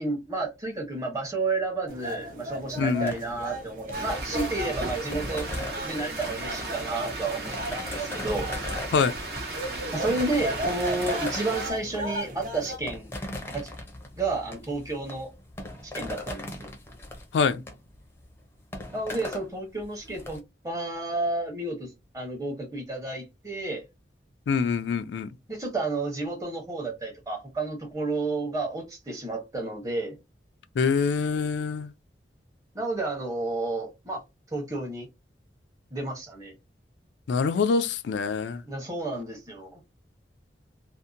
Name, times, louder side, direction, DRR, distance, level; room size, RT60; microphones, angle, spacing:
voice 1, 0.0-5.5 5.8-8.5 9.9-13.1 13.5-13.7 14.2-15.3 15.8-16.7 18.9-23.8 25.5-30.2 32.7-34.2 34.5-35.1 35.9-36.5 38.7-39.8, right 2 dB, 20° right, 0.8 m, -31 dB
sound 1, 1.9-12.8, right 1 dB, 50° right, 0.5 m, -36 dB
voice 2, 2.8-3.1 8.9-9.1 17.3-17.6 24.5-25.3 30.8-31.9 37.3-38.6, left 5 dB, 85° left, 0.3 m, -25 dB
sound 2, 3.1-20.4, left 1 dB, 15° left, 0.5 m, -39 dB
sound 3, 3.9-11.7, right 2 dB, 70° right, 1.0 m, -36 dB
2.7 x 2.1 x 2.4 m
head